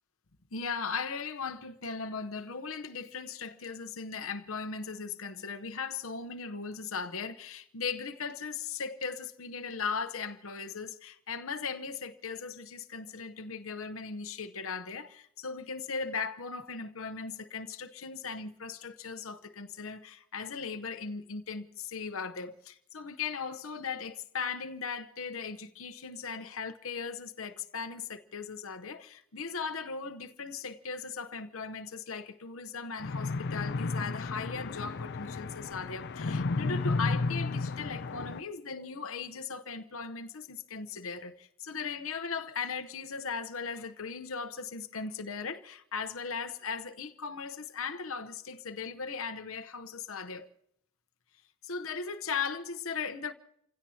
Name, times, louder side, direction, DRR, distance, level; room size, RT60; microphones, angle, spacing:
voice 1, 0.5-50.5 51.6-53.3, left 5 dB, 75° left, 1.0 m, -38 dB
sound 1, 33.0-38.4, left 3 dB, 55° left, 0.5 m, -33 dB
29.0 x 16.5 x 2.9 m
head